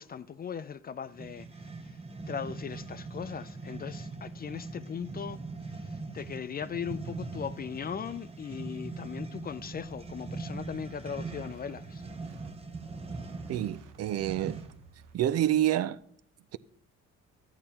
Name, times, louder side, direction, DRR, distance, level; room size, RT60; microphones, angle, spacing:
voice 1, 0.0-1.5 2.3-5.4 6.1-12.0, left 7 dB, 30° left, 0.4 m, -38 dB
sound 1, 1.1-14.9, right 3 dB, 20° right, 0.7 m, -41 dB
sound 2, 9.5-15.2, right 4 dB, 90° right, 0.7 m, -54 dB
voice 2, 13.5-14.6 15.1-16.0, right 12 dB, 55° right, 0.4 m, -27 dB
11.5 x 8.9 x 2.8 m
cardioid pair, 90°, 30 cm